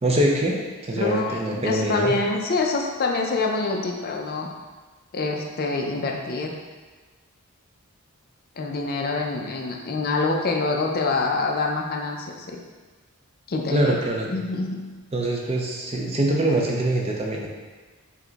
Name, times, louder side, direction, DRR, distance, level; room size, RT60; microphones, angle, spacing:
voice 1, 0.0-2.1 13.7-14.3 15.1-17.5, right 1 dB, 25° right, -1 dB, 0.5 m, -24 dB
voice 2, 0.9-4.5 5.1-6.6 8.6-12.6 13.5-14.0 14.3-14.9, left 3 dB, 45° left, 1 dB, 0.4 m, -26 dB
4.7 x 2.2 x 3.9 m, 1.3 s
head